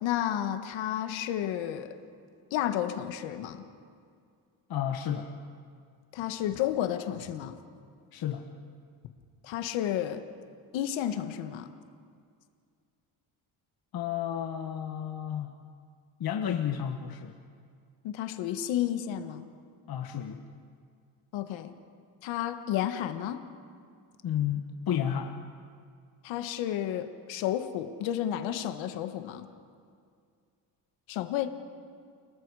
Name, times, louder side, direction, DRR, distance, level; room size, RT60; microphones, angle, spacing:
voice 1, 0.0-1.9 2.5-3.6 6.1-7.6 9.4-10.2 10.7-11.7 18.0-19.5 21.3-21.7 22.2-23.4 26.2-29.5 31.1-31.5, left 11 dB, 85° left, 8 dB, 1.5 m, -31 dB
voice 2, 4.7-5.3 8.1-8.5 13.9-15.6 16.2-17.3 19.9-20.4 24.2-25.4, left 9 dB, 55° left, 4 dB, 1.4 m, -32 dB
29.5 x 19.0 x 4.9 m, 2.2 s
cardioid pair, 100°, 45 cm